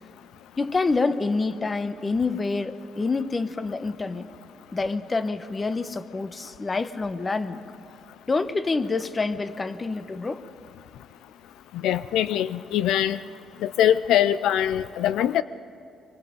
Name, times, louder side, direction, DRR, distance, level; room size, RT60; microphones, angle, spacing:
voice 1, 0.6-4.3 4.7-7.6 8.3-10.4, left 3 dB, 30° left, 1.0 m, -27 dB
voice 2, 11.8-13.2 13.6-15.4, left 11 dB, 85° left, 0.4 m, -22 dB
24.5 x 24.0 x 5.2 m
cardioid pair, 90°, 0 cm